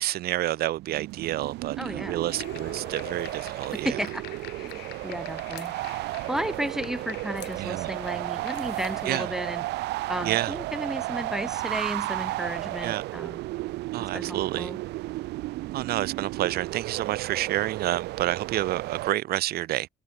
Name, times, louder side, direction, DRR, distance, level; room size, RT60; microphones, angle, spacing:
voice 1, 0.0-3.9 7.6-7.9 9.1-9.3 10.2-10.6 12.8-13.0 13.9-14.7 15.7-19.9, right 15 dB, 65° right, 0.8 m, -29 dB
sound 1, 0.8-19.1, right 18 dB, 80° right, 1.1 m, -33 dB
voice 2, 1.8-2.2 3.7-4.2 4.6-5.7 6.3-9.6 10.1-13.4 14.0-14.8, equal, 5° right, 2.8 m, -33 dB
sound 2, 2.3-9.3, left 20 dB, 90° left, 2.0 m, -45 dB
cardioid pair, 110°, 17 cm